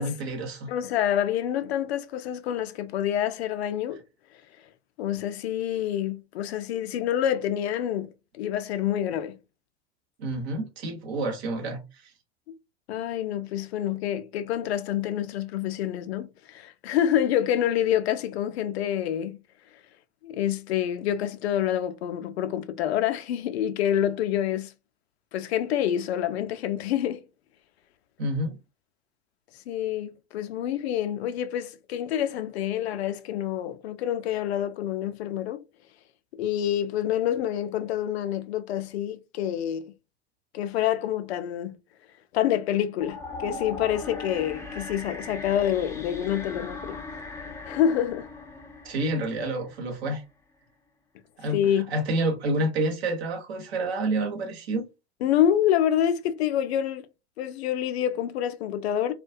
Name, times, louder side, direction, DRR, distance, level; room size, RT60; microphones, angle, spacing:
voice 1, 0.0-0.7 10.2-11.8 28.2-28.5 48.8-50.2 51.4-54.9, right 1 dB, 70° right, 0.9 m, -28 dB
voice 2, 0.7-4.0 5.0-8.1 8.4-9.4 12.5-12.6 12.9-19.4 20.2-24.7 25.3-27.2 29.7-35.6 36.4-39.9 40.5-41.7 42.3-47.0 47.7-48.3 51.4-51.9 55.2-57.1 57.4-59.1, left 10 dB, 70° left, 0.5 m, -27 dB
sound 1, 43.0-50.1, left 3 dB, 10° left, 0.4 m, -39 dB
2.2 x 2.2 x 2.6 m
figure-of-eight pair, 75°, 33 cm